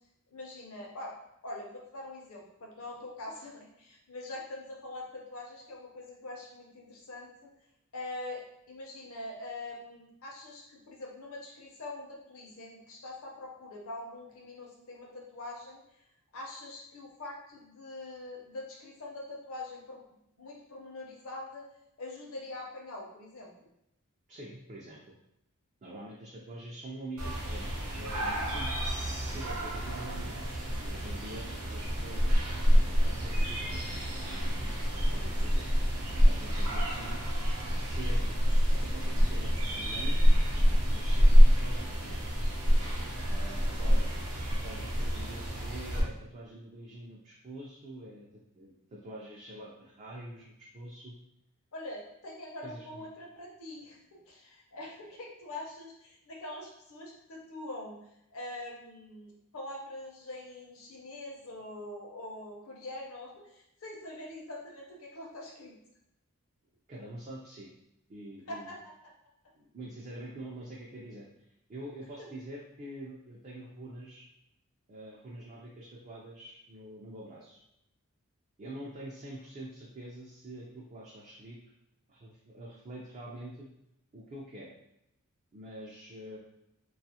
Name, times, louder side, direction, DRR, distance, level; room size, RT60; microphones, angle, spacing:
voice 1, 0.3-1.1 1.4-7.5 7.9-8.4 8.7-15.8 16.3-20.0 20.4-21.6 22.0-23.5 51.7-58.0 58.3-65.8 68.5-68.9, left 2 dB, 65° left, -1 dB, 0.6 m, -43 dB
voice 2, 24.3-25.2 25.8-28.7 29.1-30.4 30.8-35.7 36.2-37.2 37.7-38.3 38.7-40.2 40.9-42.2 43.3-44.1 44.4-51.2 52.6-53.1 66.9-67.7 68.1-68.7 69.5-74.2 74.9-77.6 78.6-81.6 82.1-83.7 84.1-84.7 85.5-86.4, right 1 dB, 35° right, -4 dB, 0.3 m, -45 dB
sound 1, 27.2-46.0, equal, 80° right, 0.7 m, -26 dB
2.3 x 2.3 x 2.7 m, 0.82 s
head